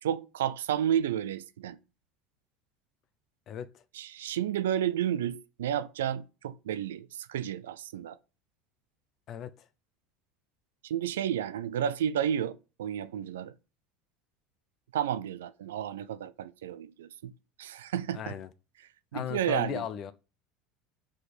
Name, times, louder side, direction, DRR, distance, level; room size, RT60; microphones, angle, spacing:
voice 1, 0.0-1.8 3.9-8.2 10.8-13.5 14.9-17.3 17.6-18.4 19.1-19.9, right 10 dB, 80° right, 0.4 m, -31 dB
voice 2, 18.1-18.5 19.1-20.1, left 9 dB, 50° left, 0.6 m, -36 dB
4.9 x 4.3 x 4.9 m
hypercardioid pair, 75°, 0 cm